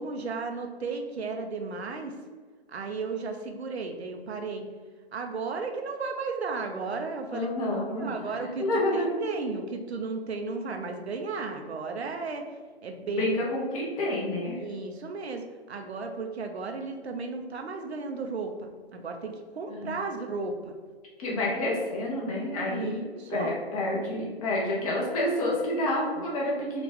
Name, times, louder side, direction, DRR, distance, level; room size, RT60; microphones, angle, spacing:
voice 1, 0.0-2.1 2.7-4.6 5.1-7.5 8.0-12.4 12.8-13.3 14.6-20.8 22.6-23.5, right 4 dB, 85° right, 4 dB, 0.8 m, -34 dB
voice 2, 7.3-8.1 8.6-9.1 13.2-14.6 19.8-19.9 21.2-23.0 23.3-26.8, left 1 dB, 35° left, -4 dB, 1.1 m, -28 dB
4.8 x 2.5 x 3.6 m, 1.6 s
hypercardioid pair, 145°, 31 cm